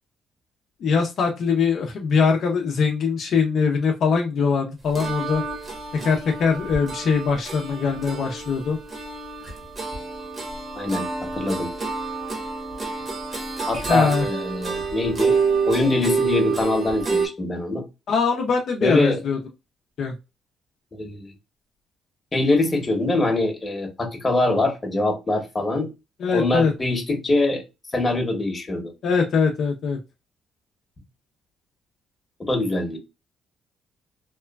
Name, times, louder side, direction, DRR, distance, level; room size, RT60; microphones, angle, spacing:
voice 1, 0.8-5.4 6.0-8.8 13.9-14.3 18.1-19.4 20.0-20.1 26.2-26.7 29.0-30.0, left 5 dB, 65° left, 0.6 m, -22 dB
sound 1, 4.9-17.3, right 4 dB, 40° right, 1.1 m, -28 dB
voice 2, 10.7-11.1 11.4-11.7 13.7-15.4 15.7-17.8 18.8-19.2 20.9-21.3 22.3-25.9 26.3-27.6 27.9-28.9 32.4-33.0, left 2 dB, 25° left, 1.0 m, -23 dB
3.0 x 2.2 x 2.3 m
cardioid pair, 90°, 0 cm